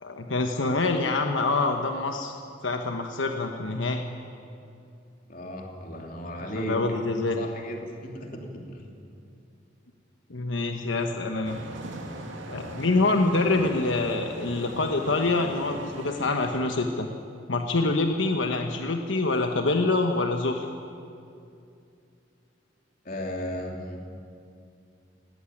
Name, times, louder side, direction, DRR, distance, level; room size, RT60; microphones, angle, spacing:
voice 1, 0.0-2.3 2.6-4.0 6.5-7.4 10.3-11.6 12.5-17.1 17.5-20.7, left 3 dB, 90° left, 4 dB, 1.2 m, -26 dB
voice 2, 5.3-6.9 7.4-8.9 23.0-24.1, left 1 dB, 45° left, 1 dB, 2.9 m, -35 dB
sound 1, 11.4-16.6, right 1 dB, 85° right, 2.5 m, -40 dB
18.0 x 17.5 x 10.0 m, 2.5 s
head